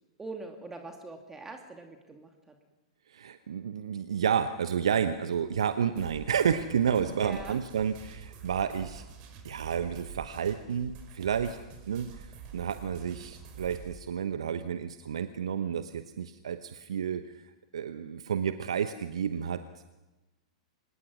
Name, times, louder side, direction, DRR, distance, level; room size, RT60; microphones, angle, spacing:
voice 1, 0.2-2.6 7.1-7.6 12.9-13.3, right 3 dB, 10° right, 3 dB, 2.5 m, -43 dB
voice 2, 3.1-9.0 9.4-11.6 11.9-19.8, right 7 dB, 65° right, 11 dB, 0.9 m, -31 dB
sound 1, 6.0-13.9, right 7 dB, 40° right, 4.7 m, -47 dB
26.0 x 20.0 x 6.2 m, 1.1 s
figure-of-eight pair, 100°, 3 cm